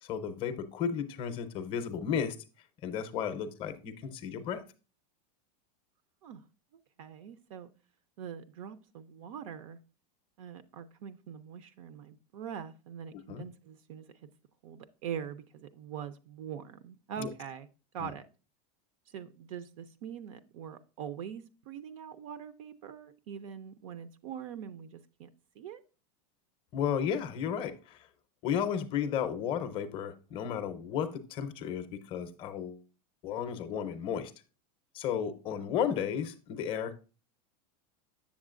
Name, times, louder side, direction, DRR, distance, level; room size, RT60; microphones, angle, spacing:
voice 1, 0.0-2.4 2.8-4.6 13.1-13.4 17.2-17.3 18.0-18.1 26.7-28.0 28.4-32.8 33.2-34.3 34.9-36.9, left 8 dB, 25° left, 9 dB, 0.6 m, -33 dB
voice 2, 7.0-7.7 8.2-9.8 10.4-14.3 14.6-17.7 17.9-18.3 19.1-25.3 25.6-25.8 35.6-35.7, right 8 dB, 55° right, 13 dB, 0.5 m, -43 dB
7.2 x 7.2 x 2.4 m, 0.34 s
supercardioid pair, 165°, 21 cm